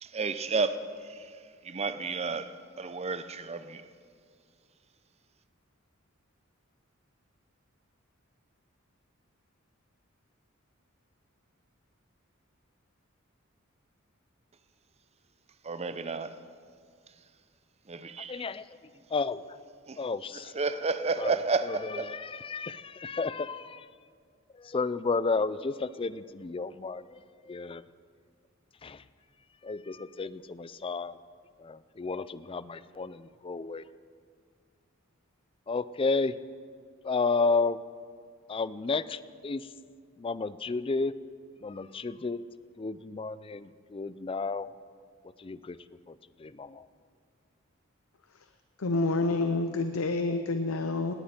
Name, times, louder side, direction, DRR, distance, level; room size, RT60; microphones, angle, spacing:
voice 1, 0.0-1.4 1.6-3.8 15.6-16.4 17.9-18.4 19.9-20.0 20.3-22.1, right 4 dB, 30° right, 0.7 m, -32 dB
voice 2, 18.3-18.7 19.1-19.6 20.0-20.5 21.2-21.4 21.7-23.9 24.5-27.8 28.8-29.0 29.6-31.2 31.6-33.8 35.7-36.3 37.0-37.8 38.5-39.7 40.2-41.1 41.6-42.4 42.8-44.7 45.4-45.8 46.1-46.9, left 4 dB, 25° left, 0.4 m, -32 dB
voice 3, 48.8-51.1, left 3 dB, 90° left, 0.8 m, -28 dB
19.0 x 17.5 x 4.4 m
head